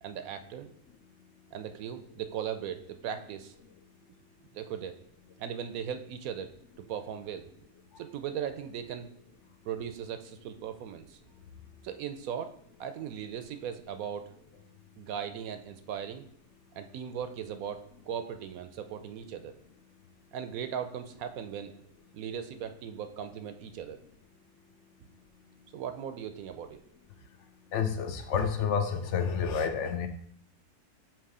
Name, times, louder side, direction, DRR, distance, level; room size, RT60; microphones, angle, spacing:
voice 1, 0.0-0.7 1.5-3.5 4.5-4.9 5.4-6.5 6.9-7.5 8.0-9.1 9.6-11.2 11.8-12.5 12.8-14.2 15.0-16.3 16.7-17.8 18.1-19.5 20.3-21.7 22.1-24.0 25.7-26.8, right 8 dB, 70° right, 8 dB, 0.9 m, -38 dB
voice 2, 27.7-30.1, left 6 dB, 60° left, 8 dB, 0.8 m, -29 dB
7.2 x 3.1 x 4.8 m, 0.64 s
omnidirectional pair, 1.7 m